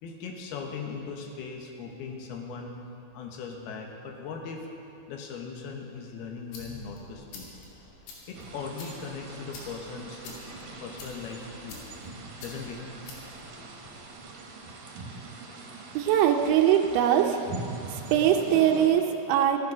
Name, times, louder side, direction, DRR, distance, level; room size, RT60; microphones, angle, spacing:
voice 1, 0.0-2.8 3.1-4.7 5.1-7.5 8.3-11.8 12.4-12.8, left 5 dB, 70° left, 2 dB, 2.8 m, -39 dB
sound 1, 6.2-14.3, left 3 dB, 85° left, 4.8 m, -48 dB
sound 2, 8.3-18.9, right 3 dB, 60° right, 2.6 m, -42 dB
voice 2, 15.9-17.4 17.9-19.7, right 10 dB, 85° right, 3 dB, 3.0 m, -22 dB
14.5 x 12.5 x 6.1 m, 2.8 s
omnidirectional pair, 5.2 m